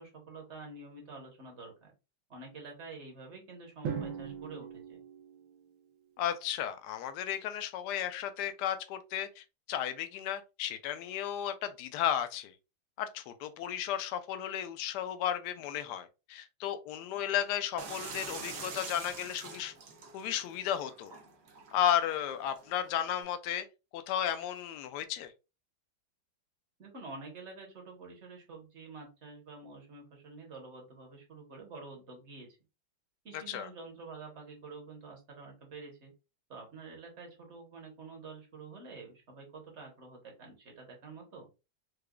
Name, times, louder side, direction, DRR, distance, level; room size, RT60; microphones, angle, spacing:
voice 1, 0.0-1.9 2.3-5.0 26.8-32.6 33.2-36.1 36.5-41.5, right 3 dB, 40° right, 1.2 m, -48 dB
Drum, 3.8-6.0, right 7 dB, 85° right, 1.5 m, -40 dB
voice 2, 6.2-12.5 13.0-19.7 20.1-21.1 21.7-23.7 23.9-25.3 33.3-33.7, left 10 dB, 75° left, 1.0 m, -34 dB
sound 1, 17.8-23.2, right 4 dB, 70° right, 0.6 m, -46 dB
4.8 x 2.3 x 2.2 m
omnidirectional pair, 2.1 m